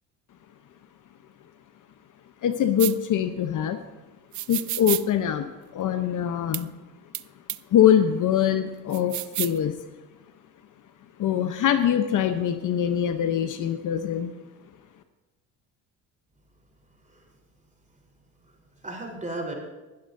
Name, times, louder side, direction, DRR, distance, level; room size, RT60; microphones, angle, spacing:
voice 1, 2.4-3.8 4.5-5.5 5.7-6.7 7.7-9.7 11.2-14.3, left 9 dB, 50° left, 9 dB, 0.9 m, -23 dB
sound 1, 2.8-2.9 4.3-5.0 6.5-6.6 7.1-7.2 7.5-7.6 8.9-9.6, right 16 dB, 50° right, 0.5 m, -29 dB
voice 2, 16.8-17.7 18.4-19.5, right 2 dB, 20° right, 0 dB, 3.9 m, -38 dB
22.5 x 10.5 x 2.7 m, 1.1 s
supercardioid pair, 85°, 39 cm